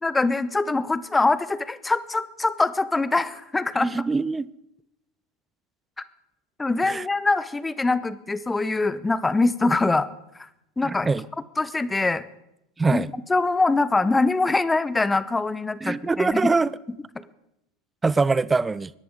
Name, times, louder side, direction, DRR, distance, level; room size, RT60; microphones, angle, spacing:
voice 1, 0.0-4.0 6.6-10.1 10.8-11.1 11.6-12.2 12.9-13.0 13.3-16.5, left 3 dB, 10° left, 16 dB, 0.8 m, -23 dB
voice 2, 3.8-4.5 6.8-7.0 10.8-11.2 12.8-13.1 15.8-16.7 18.0-18.9, right 4 dB, 15° right, 20 dB, 0.5 m, -23 dB
25.0 x 10.5 x 3.7 m, 0.84 s
hypercardioid pair, 85°, 0 cm